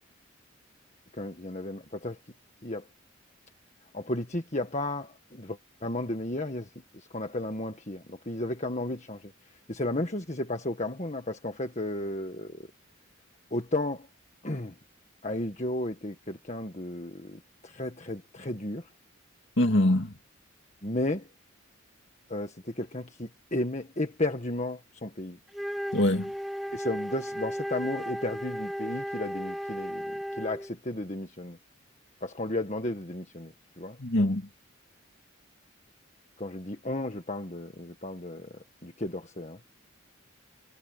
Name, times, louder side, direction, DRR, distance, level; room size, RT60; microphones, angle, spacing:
voice 1, 1.1-2.2 2.6-2.9 3.9-9.3 9.7-12.7 13.5-14.1 14.4-14.7 15.2-18.9 20.8-21.3 22.3-25.4 26.7-31.6 32.2-34.0 36.4-39.6, left 1 dB, 35° left, 1.7 m, -34 dB
voice 2, 19.6-20.1 25.9-26.3 34.0-34.5, left 1 dB, 55° left, 2.5 m, -23 dB
Wind instrument woodwind instrument, 25.5-30.7, equal, ahead, 2.6 m, -35 dB
head